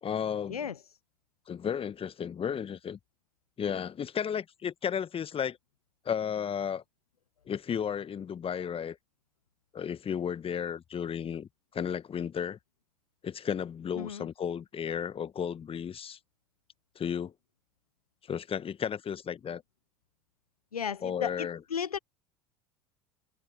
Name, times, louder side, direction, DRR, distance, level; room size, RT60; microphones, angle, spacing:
voice 1, 0.0-0.7 1.5-3.0 3.6-5.6 6.0-6.8 7.5-9.0 9.7-12.6 13.2-16.2 16.9-17.3 18.3-19.6 21.0-21.6, left 8 dB, 30° left, 1.4 m, -33 dB
voice 2, 20.7-22.0, left 7 dB, 90° left, 0.5 m, -34 dB
figure-of-eight pair, 70°, 19 cm